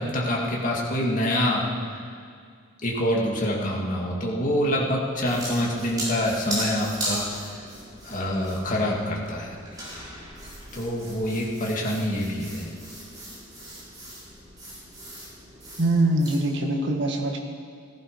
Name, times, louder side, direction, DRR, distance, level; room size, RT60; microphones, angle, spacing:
voice 1, 0.0-2.0 2.8-7.3 8.0-9.6 10.7-12.7, equal, 40° left, -3 dB, 2.4 m, -26 dB
sound 1, 5.2-16.4, right 1 dB, 20° right, 4.1 m, -37 dB
voice 2, 15.8-17.4, right 1 dB, 60° right, 2 dB, 1.7 m, -23 dB
15.0 x 14.5 x 5.3 m, 2.1 s
head